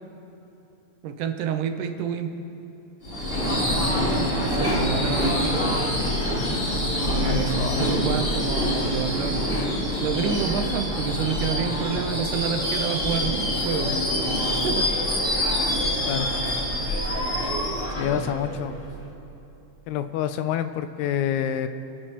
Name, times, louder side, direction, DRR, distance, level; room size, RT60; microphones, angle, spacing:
voice 1, 1.0-2.3 4.4-5.9 7.0-9.4 10.0-14.0 14.6-15.2, right 7 dB, 80° right, 6 dB, 2.4 m, -29 dB
Subway metro underground / Screech, 3.0-19.0, equal, 25° left, 2.9 m, -25 dB
voice 2, 7.2-7.9 16.1-16.3 18.0-18.8 19.9-21.7, left 10 dB, 80° left, 10 dB, 1.8 m, -27 dB
29.5 x 11.0 x 3.0 m, 2.9 s
omnidirectional pair, 3.7 m